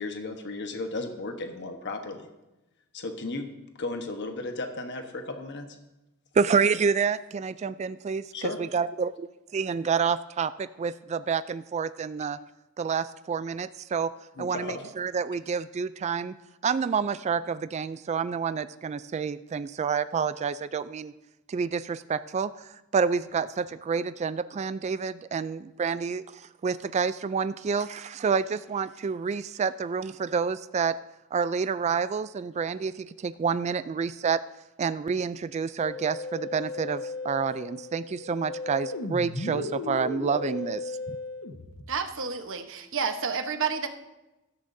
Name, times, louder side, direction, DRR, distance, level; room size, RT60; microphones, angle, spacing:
voice 1, 0.0-2.3 2.9-3.5 3.8-5.7 8.3-8.6 14.4-14.9, left 2 dB, 55° left, 5 dB, 1.1 m, -35 dB
voice 2, 6.3-9.1 9.5-12.4 12.8-14.1 14.4-16.3 16.6-21.1 21.5-31.0 31.3-34.4 34.8-41.2, right 6 dB, 30° right, 14 dB, 0.3 m, -28 dB
Musical instrument, 35.8-41.8, left 3 dB, 80° left, 1.3 m, -35 dB
voice 3, 41.9-43.9, right 6 dB, 65° right, 7 dB, 1.0 m, -30 dB
16.0 x 13.0 x 2.7 m, 1.0 s
head